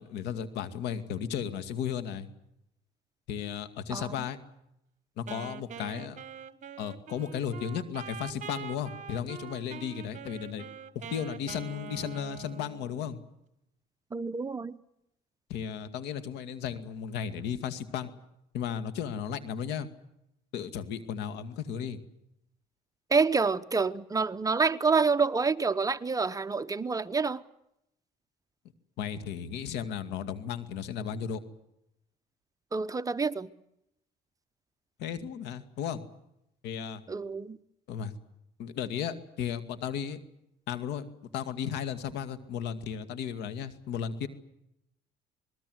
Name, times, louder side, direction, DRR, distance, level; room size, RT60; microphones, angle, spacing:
voice 1, 0.0-2.3 3.3-4.4 5.2-6.2 6.8-10.7 10.9-13.2 15.5-18.1 18.5-19.9 20.5-22.0 29.0-31.4 35.0-36.0 36.6-37.0 37.9-38.1 38.6-40.2 40.7-41.1 41.3-44.3, left 8 dB, 85° left, 2.3 m, -35 dB
Wind instrument woodwind instrument, 5.3-13.2, right 8 dB, 45° right, 1.5 m, -44 dB
voice 2, 14.1-14.7 23.1-27.4 32.7-33.5 37.1-37.6, right 4 dB, 20° right, 0.9 m, -27 dB
27.0 x 20.5 x 8.0 m
cardioid pair, 110°, 17 cm